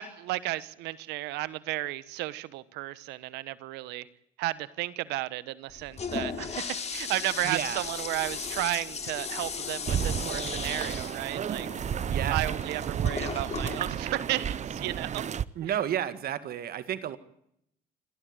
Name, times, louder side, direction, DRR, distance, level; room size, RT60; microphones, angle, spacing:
voice 1, 0.0-4.1 4.4-11.7 12.3-15.2 15.6-15.7, right 17 dB, 85° right, 18 dB, 1.2 m, -33 dB
Toilet flush, 5.7-15.1, left 6 dB, 40° left, 2.9 m, -37 dB
voice 2, 7.4-7.8 12.1-12.4 15.6-17.2, right 10 dB, 65° right, 13 dB, 1.9 m, -31 dB
sound 1, 9.9-15.4, right 8 dB, 45° right, 0.8 m, -32 dB
28.5 x 13.0 x 9.0 m, 0.75 s
supercardioid pair, 80°, 17 cm